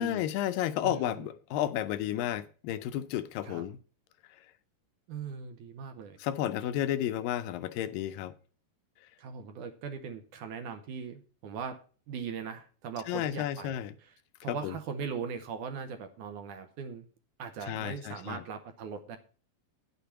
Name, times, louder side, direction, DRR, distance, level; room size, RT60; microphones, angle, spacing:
voice 1, 0.0-3.8 6.2-8.3 13.1-13.9 14.5-14.8 17.6-18.4, left 12 dB, 80° left, 2.2 m, -32 dB
voice 2, 0.8-1.3 3.4-3.7 5.1-6.2 9.2-11.8 12.1-14.1 14.4-17.1 17.4-19.2, right 6 dB, 75° right, 2.1 m, -40 dB
9.8 x 6.8 x 5.7 m
omnidirectional pair, 4.1 m